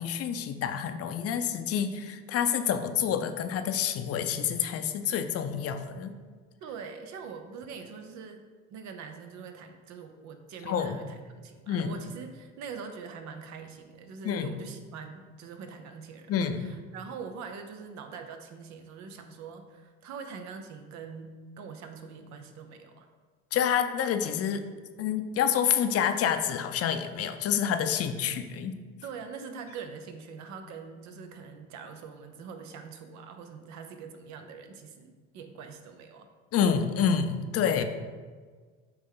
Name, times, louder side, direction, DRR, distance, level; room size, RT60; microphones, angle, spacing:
voice 1, 0.0-6.1 10.7-11.0 11.7-12.0 14.2-14.5 16.3-16.7 23.5-24.6 25.0-28.8 36.5-37.8, left 8 dB, 50° left, 8 dB, 0.6 m, -28 dB
voice 2, 6.6-8.4 8.7-23.1 29.0-36.3 37.8-37.9, right 5 dB, 65° right, 6 dB, 0.9 m, -43 dB
8.7 x 3.2 x 3.8 m, 1.5 s
supercardioid pair, 95°, 31 cm